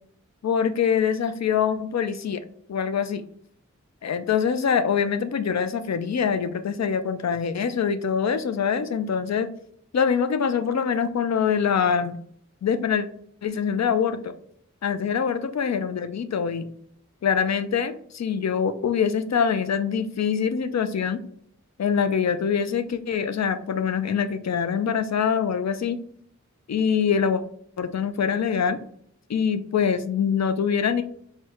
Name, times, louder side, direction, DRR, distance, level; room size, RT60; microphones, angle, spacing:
voice 1, 0.4-2.4 2.7-3.2 4.0-9.5 9.9-12.2 12.6-13.1 13.4-14.3 14.8-16.7 17.2-21.2 21.8-26.0 26.7-27.4 27.8-28.8 29.3-31.0, left 7 dB, 60° left, 10 dB, 0.5 m, -24 dB
4.5 x 2.1 x 3.5 m, 0.63 s
wide cardioid pair, 70°, 30 cm